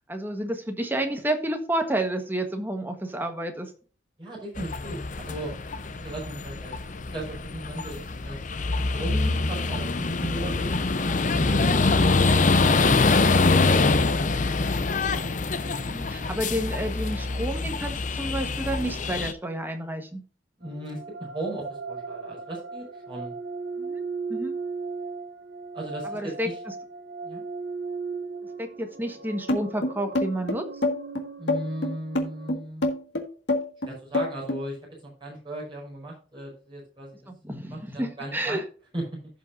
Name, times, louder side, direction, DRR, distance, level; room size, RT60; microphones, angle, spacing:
voice 1, 0.1-3.7 15.8-20.2 23.8-24.0 24.3-24.5 26.0-26.5 28.6-30.8 37.3-38.6, right 1 dB, 10° right, 5 dB, 1.3 m, -30 dB
voice 2, 4.2-10.7 14.2-15.0 20.6-23.3 25.7-26.6 27.2-27.4 31.4-32.9 33.8-34.8 35.0-37.1 37.7-38.6 38.9-39.0, right 1 dB, 25° right, -4 dB, 5.0 m, -37 dB
sound 1, 4.6-19.3, left 3 dB, 45° left, 0.7 m, -24 dB
sound 2, 20.6-32.5, right 4 dB, 85° right, 1.2 m, -37 dB
sound 3, 29.5-34.6, left 2 dB, 80° left, 1.8 m, -26 dB
15.5 x 5.6 x 2.6 m, 0.39 s
head